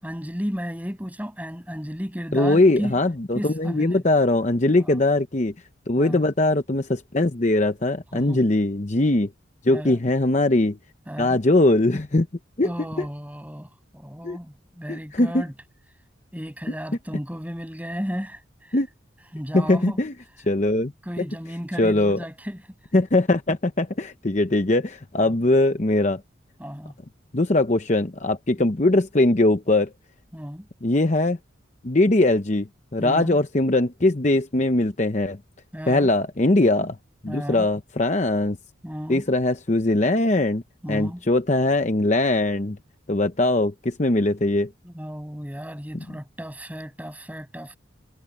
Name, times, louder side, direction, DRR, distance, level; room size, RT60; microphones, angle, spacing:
voice 1, 0.0-3.0 3.3-4.0 4.7-5.0 6.0-6.2 8.1-8.4 9.7-10.0 11.1-11.4 12.6-15.5 16.3-18.8 19.3-20.0 21.0-22.6 25.2-25.3 26.6-26.9 28.6-28.7 30.3-30.7 33.0-33.4 35.7-36.1 37.3-37.7 38.8-39.2 40.8-41.2 44.8-47.8, equal, 10° right, 6.7 m, -34 dB
voice 2, 2.3-5.5 5.9-9.3 9.6-10.8 11.2-12.3 12.6-12.7 14.2-14.4 14.9-15.4 18.7-18.9 19.5-20.1 20.5-20.9 21.2-21.3 21.8-22.2 22.9-26.2 27.3-29.9 30.8-31.4 31.8-32.7 32.9-35.4 35.9-37.0 37.2-38.6 39.1-40.6 40.9-42.8 43.1-44.7, left 2 dB, 35° left, 0.8 m, -21 dB
head